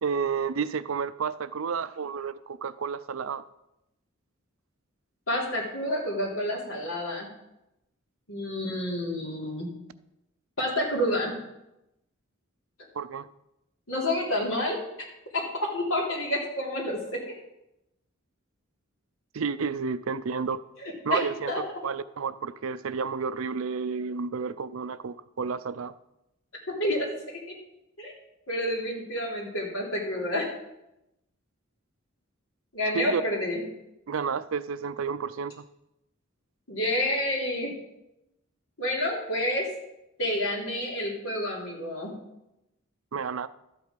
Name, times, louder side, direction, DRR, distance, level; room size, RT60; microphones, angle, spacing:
voice 1, 0.0-3.4 12.9-13.3 19.3-20.6 21.0-25.9 32.9-33.2 34.1-35.6 43.1-43.5, right 5 dB, 70° right, 15 dB, 0.5 m, -31 dB
voice 2, 5.3-7.3 8.3-9.7 10.6-11.3 13.9-14.8 15.3-17.2 21.1-21.2 21.5-21.6 26.8-27.4 28.0-28.1 28.5-30.5 32.7-33.6 36.7-37.7 38.8-39.7 40.2-42.1, left 1 dB, 85° left, -2 dB, 3.2 m, -29 dB
12.5 x 8.1 x 5.2 m, 0.88 s
head